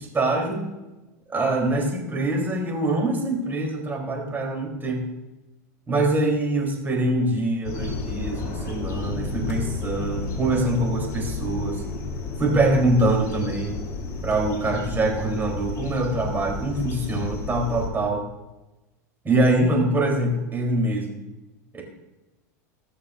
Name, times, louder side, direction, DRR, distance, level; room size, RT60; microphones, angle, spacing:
voice 1, 0.1-0.6 1.3-5.1 5.9-11.8 12.4-13.8 14.2-18.2 19.2-21.2 21.7-21.8, right 2 dB, 20° right, 0 dB, 3.6 m, -24 dB
sound 1, 7.6-17.9, left 4 dB, 40° left, 3.2 m, -32 dB
19.5 x 6.6 x 2.6 m, 1.0 s
hypercardioid pair, 105°, 9 cm